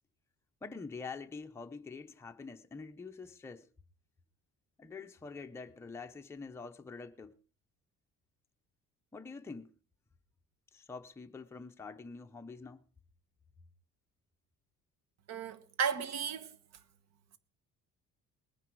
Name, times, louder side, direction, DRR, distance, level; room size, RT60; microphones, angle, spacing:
voice 1, 0.6-3.7 4.8-7.4 9.1-9.7 10.7-12.8, left 4 dB, 10° left, 0.6 m, -46 dB
voice 2, 15.3-16.5, right 7 dB, 55° right, 1.3 m, -34 dB
20.0 x 9.9 x 4.6 m
cardioid pair, 175°, 32 cm